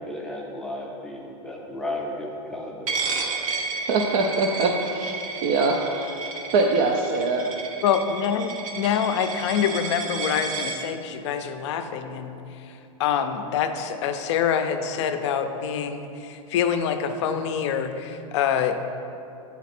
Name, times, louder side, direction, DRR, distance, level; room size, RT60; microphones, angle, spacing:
voice 1, 0.0-3.0, left 1 dB, 5° left, -2 dB, 0.6 m, -34 dB
Coin (dropping), 2.9-10.8, right 4 dB, 70° right, 0.7 m, -32 dB
voice 2, 3.9-6.1 6.5-7.5, right 3 dB, 45° right, 2 dB, 0.4 m, -23 dB
voice 3, 7.8-12.4 13.0-18.8, left 8 dB, 55° left, 8 dB, 0.5 m, -25 dB
7.1 x 4.1 x 4.2 m, 2.8 s
supercardioid pair, 145°, 18 cm